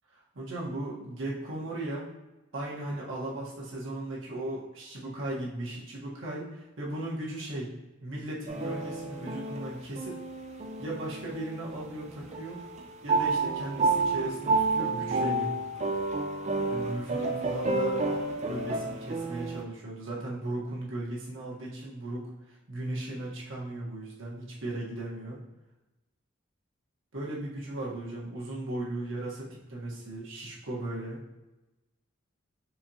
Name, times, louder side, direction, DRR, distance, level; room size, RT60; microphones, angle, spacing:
voice 1, 0.4-2.1 2.5-7.7 8.0-10.2 10.8-12.6 13.0-15.5 16.7-18.1 18.4-25.4 27.1-31.2, right 1 dB, 70° right, -5 dB, 1.3 m, -37 dB
sound 1, 8.5-12.0 12.3-19.6, right 3 dB, 35° right, 0.5 m, -30 dB
4.6 x 3.6 x 2.8 m, 1.1 s
head